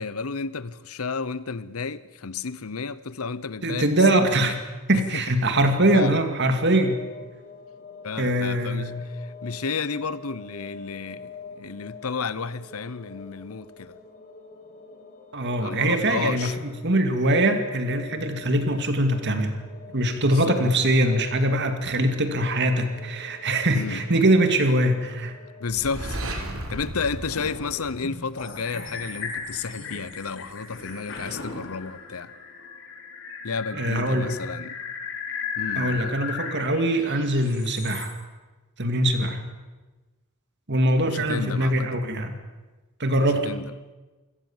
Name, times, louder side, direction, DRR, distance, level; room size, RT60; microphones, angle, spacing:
voice 1, 0.0-4.6 4.9-5.2 5.9-6.2 8.0-11.3 11.6-14.0 15.6-16.5 20.3-20.6 23.7-24.0 25.6-26.4 26.7-32.3 33.4-34.8 35.6-36.2 41.0-41.9 43.4-43.7, left 5 dB, 90° left, 0.9 m, -32 dB
voice 2, 3.6-4.5 4.9-7.0 8.2-9.0 15.3-19.6 19.9-25.3 33.7-34.3 35.8-38.1 38.8-39.4 40.7-42.3 43.0-43.5, right 1 dB, 55° right, 2.4 m, -22 dB
sound 1, 6.5-25.9, left 4 dB, 40° left, 3.0 m, -46 dB
sound 2, 25.7-28.6, right 1 dB, 70° right, 3.7 m, -34 dB
sound 3, 27.3-38.1, left 5 dB, 60° left, 4.1 m, -36 dB
27.0 x 17.5 x 7.3 m
head